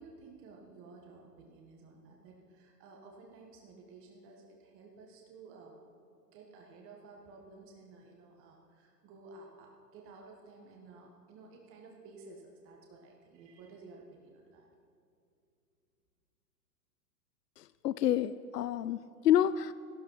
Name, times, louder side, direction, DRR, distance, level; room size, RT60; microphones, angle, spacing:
voice 1, 0.0-5.7 6.3-14.7, right 3 dB, 25° right, 0 dB, 1.7 m, -54 dB
voice 2, 17.6-19.7, left 11 dB, 75° left, 16 dB, 0.6 m, -29 dB
14.0 x 12.5 x 5.8 m, 2.5 s
figure-of-eight pair, 115°, 48 cm